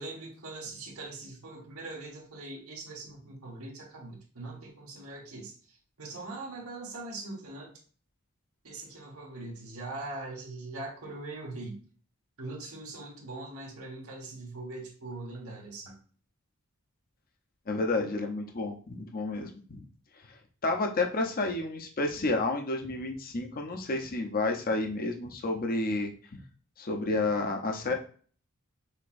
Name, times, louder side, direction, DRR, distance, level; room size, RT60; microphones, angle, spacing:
voice 1, 0.0-5.5 6.0-7.7 8.6-11.8 12.4-16.0, right 2 dB, 80° right, -1 dB, 1.5 m, -41 dB
voice 2, 17.7-19.8 20.6-26.4 26.8-27.9, left 2 dB, 45° left, 3 dB, 0.8 m, -30 dB
6.6 x 2.9 x 2.5 m, 0.43 s
head